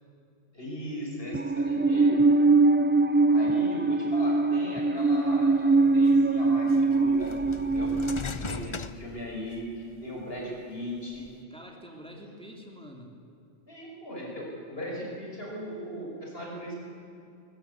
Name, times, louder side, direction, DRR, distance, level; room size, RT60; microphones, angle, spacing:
voice 1, 0.5-2.2 3.3-7.3 7.6-7.9 8.4-11.3 13.7-16.7, equal, 50° left, -3 dB, 6.3 m, -38 dB
Musical instrument, 1.3-8.2, right 3 dB, 15° right, 0.5 m, -22 dB
sound 1, 5.7-5.8 6.7-9.8 10.3-11.3, left 5 dB, 35° left, 0.5 m, -39 dB
voice 2, 8.2-8.6 11.5-13.2, equal, 5° left, 1 dB, 2.8 m, -46 dB
22.5 x 19.5 x 8.3 m, 2.6 s
omnidirectional pair, 1.3 m